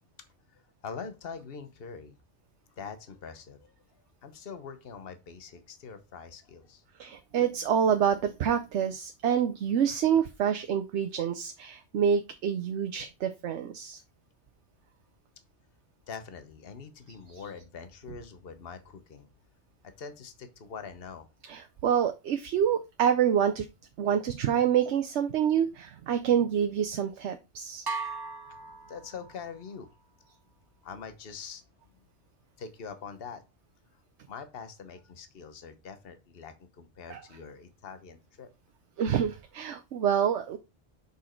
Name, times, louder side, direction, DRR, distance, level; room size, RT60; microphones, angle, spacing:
voice 1, 0.5-2.2 2.8-3.7 4.2-6.8 16.1-19.3 19.8-21.3 28.5-28.6 28.9-29.9 30.8-31.6 32.6-33.4 34.3-38.5, left 5 dB, 60° left, 9 dB, 1.2 m, -44 dB
voice 2, 7.0-14.0 17.3-17.4 21.5-23.7 24.0-27.9 37.1-37.2 39.0-40.6, right 8 dB, 80° right, 7 dB, 1.0 m, -27 dB
sound 1, 27.9-29.6, right 4 dB, 30° right, 0.5 m, -37 dB
6.2 x 5.8 x 4.4 m, 0.26 s
omnidirectional pair, 1.2 m